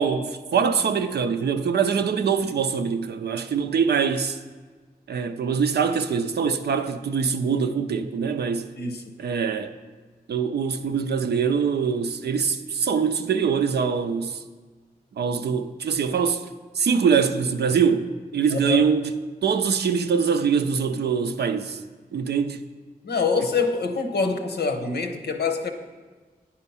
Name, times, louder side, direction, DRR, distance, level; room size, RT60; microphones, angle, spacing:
voice 1, 0.0-4.4 5.1-8.7 9.2-9.7 10.3-14.4 15.2-16.5 16.8-19.1 19.4-21.8 22.1-22.6, right 6 dB, 90° right, 0.5 m, -23 dB
voice 2, 18.5-18.8 23.0-25.7, left 4 dB, 90° left, 0.8 m, -25 dB
9.9 x 4.4 x 5.6 m
cardioid pair, 50°, 17 cm